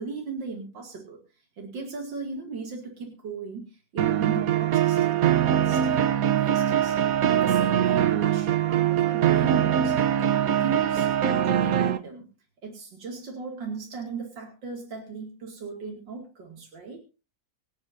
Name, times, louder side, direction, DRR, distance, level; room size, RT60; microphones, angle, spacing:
voice 1, 0.0-12.3 12.6-17.0, right 4 dB, 90° right, 1 dB, 3.2 m, -37 dB
sound 1, 4.0-12.0, right 10 dB, 60° right, 1.2 m, -22 dB
26.0 x 8.9 x 2.7 m, 0.32 s
omnidirectional pair, 1.9 m